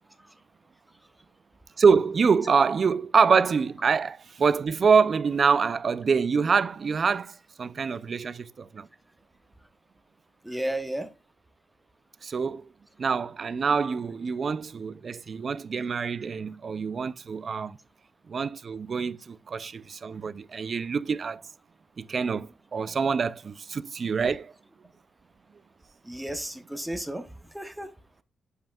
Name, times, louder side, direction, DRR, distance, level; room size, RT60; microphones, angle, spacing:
voice 1, 1.8-8.9 12.2-12.6 13.0-17.8 18.3-21.4 22.0-24.5, right 5 dB, 45° right, 0.4 m, -25 dB
voice 2, 10.4-11.1 26.1-27.2 27.5-27.9, right 1 dB, 5° right, 0.8 m, -32 dB
7.8 x 5.4 x 2.3 m
wide cardioid pair, 140°, 0 cm